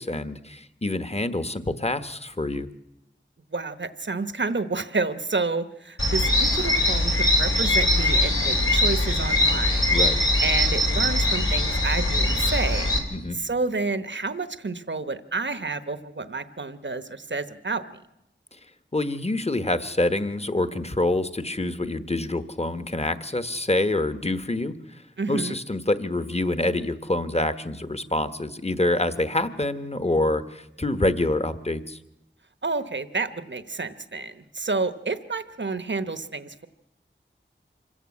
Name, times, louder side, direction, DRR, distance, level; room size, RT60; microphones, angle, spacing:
voice 1, 0.0-2.7 9.9-10.2 13.1-13.4 18.9-25.0 25.3-32.0, left 2 dB, 30° left, 11 dB, 1.3 m, -26 dB
voice 2, 3.5-9.8 10.4-12.9 13.3-17.8 25.2-25.6 32.6-36.7, right 3 dB, 65° right, 11 dB, 1.1 m, -29 dB
sound 1, 6.0-13.0, left 1 dB, 85° left, 3.8 m, -22 dB
25.5 x 15.0 x 8.5 m, 0.89 s
wide cardioid pair, 45°, 20 cm